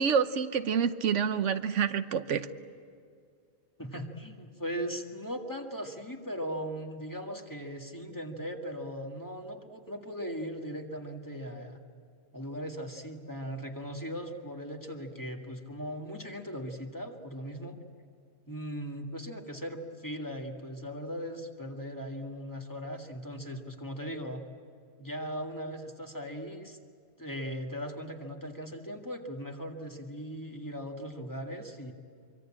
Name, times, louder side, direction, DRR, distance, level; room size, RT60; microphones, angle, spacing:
voice 1, 0.0-2.5, right 7 dB, 90° right, 10 dB, 1.2 m, -27 dB
voice 2, 3.8-11.8 12.3-17.8 18.5-24.4 25.0-26.8 27.2-31.9, equal, 15° left, 2 dB, 1.9 m, -38 dB
25.0 x 24.5 x 8.8 m, 2.3 s
omnidirectional pair, 1.2 m